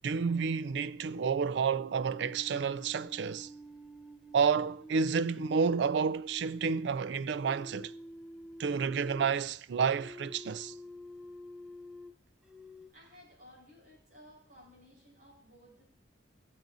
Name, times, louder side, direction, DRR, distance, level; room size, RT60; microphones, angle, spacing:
voice 1, 0.0-3.5 4.3-7.9 8.6-10.7, right 5 dB, 65° right, 0.3 m, -30 dB
sound 1, 1.9-6.9 7.3-9.4 9.9-12.2 12.4-12.9, equal, 5° right, 0.6 m, -49 dB
voice 2, 12.9-15.8, left 1 dB, 45° right, 4.8 m, -57 dB
20.5 x 7.4 x 2.6 m
head